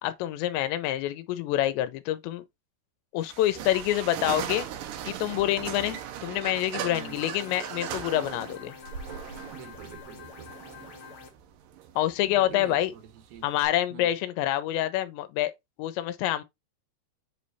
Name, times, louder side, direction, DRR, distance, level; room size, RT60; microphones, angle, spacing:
voice 1, 0.0-2.4 3.1-4.7 5.0-8.7 12.0-12.9 13.4-15.5 15.8-16.4, left 13 dB, 90° left, 2.9 m, -27 dB
sound 1, 3.2-13.7, right 9 dB, 80° right, 2.0 m, -39 dB
voice 2, 6.7-7.2 9.5-10.5 12.2-13.5 13.9-14.1, right 8 dB, 65° right, 1.6 m, -46 dB
sound 2, 6.9-11.3, left 5 dB, 70° left, 1.2 m, -47 dB
7.7 x 3.2 x 4.0 m
omnidirectional pair, 5.0 m